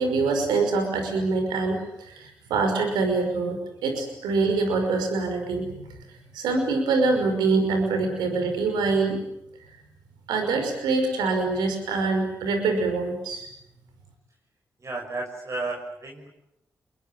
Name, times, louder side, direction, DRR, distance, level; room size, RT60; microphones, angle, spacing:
voice 1, 0.0-5.8 6.3-9.2 10.3-13.5, right 3 dB, 90° right, 5 dB, 5.6 m, -25 dB
voice 2, 14.8-16.3, right 2 dB, 45° right, 1 dB, 6.0 m, -33 dB
25.5 x 22.5 x 9.2 m, 0.78 s
supercardioid pair, 45°, 7 cm